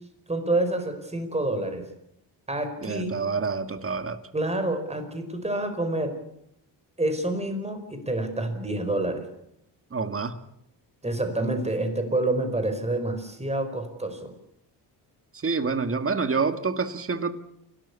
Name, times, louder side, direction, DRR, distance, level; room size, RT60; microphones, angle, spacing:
voice 1, 0.3-1.8 2.5-3.2 4.3-6.1 7.0-9.3 11.0-14.3, right 2 dB, 15° right, 7 dB, 4.6 m, -28 dB
voice 2, 2.8-4.2 9.9-10.4 15.3-17.3, right 4 dB, 30° right, 9 dB, 1.9 m, -27 dB
28.5 x 13.0 x 8.3 m, 0.78 s
cardioid pair, 100°, 43 cm